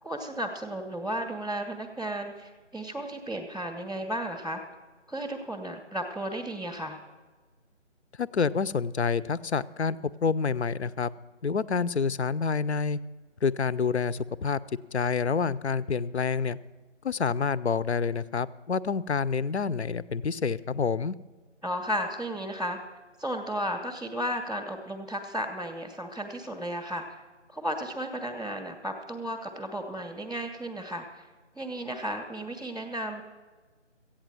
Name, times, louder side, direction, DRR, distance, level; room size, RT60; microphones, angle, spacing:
voice 1, 0.0-4.6 5.1-7.0 21.6-22.8 23.2-27.2 27.5-31.3 31.6-33.2, equal, ahead, -9 dB, 0.5 m, -34 dB
voice 2, 8.2-11.1 11.4-13.0 13.4-14.6 14.9-16.6 17.0-21.2, left 5 dB, 60° left, 18 dB, 0.6 m, -28 dB
14.0 x 8.8 x 7.5 m, 1.4 s
figure-of-eight pair, 165°, 37 cm